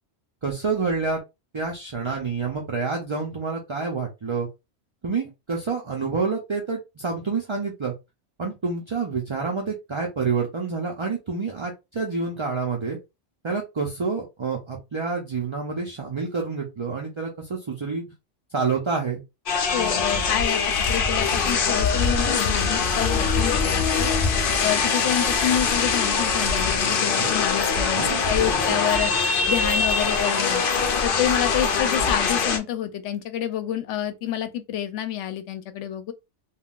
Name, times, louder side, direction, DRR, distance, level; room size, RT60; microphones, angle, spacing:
voice 1, 0.4-1.2 1.5-4.5 5.0-7.9 8.4-13.0 13.4-18.0 18.5-19.2 27.2-27.3 27.9-28.6 29.0-29.1, right 4 dB, 40° right, 0.4 m, -28 dB
sound 1, 19.5-32.6, left 5 dB, 55° left, 0.7 m, -23 dB
voice 2, 19.7-20.6 20.9-24.1 24.6-29.1 29.5-30.6 31.0-36.1, left 10 dB, 80° left, 0.9 m, -28 dB
3.6 x 2.3 x 2.3 m
omnidirectional pair, 1.2 m